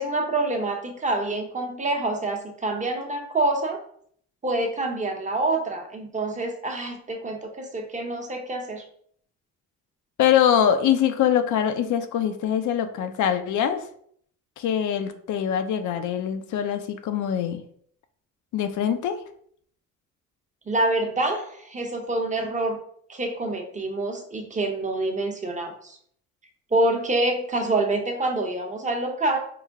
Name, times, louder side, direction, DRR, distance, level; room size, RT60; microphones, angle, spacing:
voice 1, 0.0-3.8 4.4-8.8 20.7-22.8 23.1-26.0 26.7-29.4, right 2 dB, 25° right, 3 dB, 0.9 m, -26 dB
voice 2, 10.2-13.9 14.6-17.6 18.5-19.2, left 9 dB, 75° left, 8 dB, 0.6 m, -23 dB
4.9 x 2.2 x 3.6 m, 0.62 s
cardioid pair, 90°, 30 cm